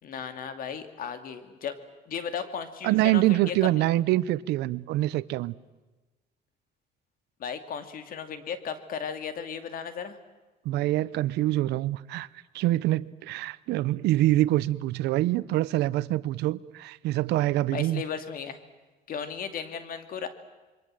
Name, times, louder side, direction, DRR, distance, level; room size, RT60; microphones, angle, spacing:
voice 1, 0.0-1.8 2.1-3.7 7.4-10.2 17.7-18.6 19.1-20.3, left 7 dB, 55° left, 2.6 m, -35 dB
voice 2, 2.8-5.5 10.6-12.3 12.5-18.0, right 15 dB, 85° right, 0.8 m, -25 dB
27.5 x 23.5 x 7.8 m
cardioid pair, 110°, 17 cm